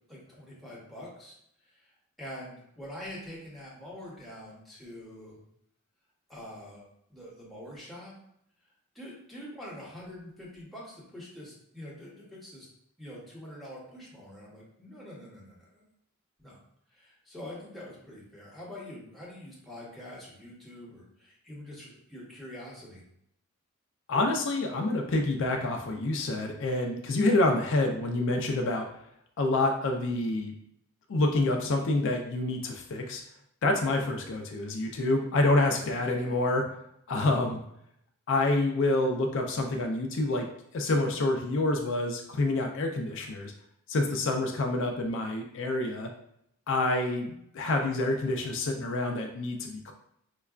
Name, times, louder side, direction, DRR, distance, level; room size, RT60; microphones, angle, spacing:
voice 1, 0.1-1.4 2.2-5.4 6.3-6.8 7.1-8.1 8.9-12.7 13.0-15.8 16.4-16.6 17.0-23.0, left 1 dB, ahead, -5 dB, 0.9 m, -45 dB
voice 2, 24.1-28.9 29.4-30.5 31.1-33.2 33.6-36.6 37.1-37.6 38.3-40.5 40.7-43.5 43.9-46.1 46.7-49.9, left 2 dB, 60° left, 3 dB, 0.4 m, -27 dB
4.5 x 2.2 x 2.4 m, 0.73 s
head